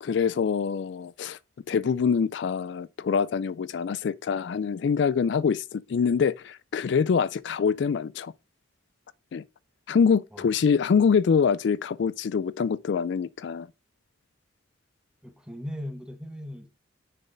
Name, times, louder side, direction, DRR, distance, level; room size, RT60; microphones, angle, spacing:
voice 1, 0.0-1.4 1.7-8.3 9.3-9.4 9.9-13.7, left 6 dB, 65° left, 0.3 m, -25 dB
voice 2, 15.2-16.7, left 1 dB, 5° right, 0.8 m, -38 dB
6.6 x 4.2 x 3.8 m
head